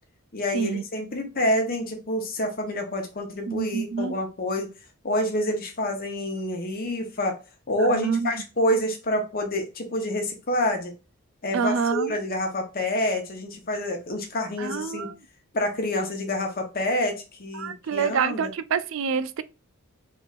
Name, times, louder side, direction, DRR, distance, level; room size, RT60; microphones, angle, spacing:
voice 1, 0.3-4.7 5.0-7.3 7.7-10.9 11.4-15.1 15.5-18.5, left 1 dB, 40° left, 0.9 m, -27 dB
voice 2, 3.5-4.1 7.8-8.4 11.5-12.2 14.6-15.2 17.5-19.4, right 6 dB, 60° right, 0.3 m, -27 dB
3.4 x 3.4 x 2.4 m
head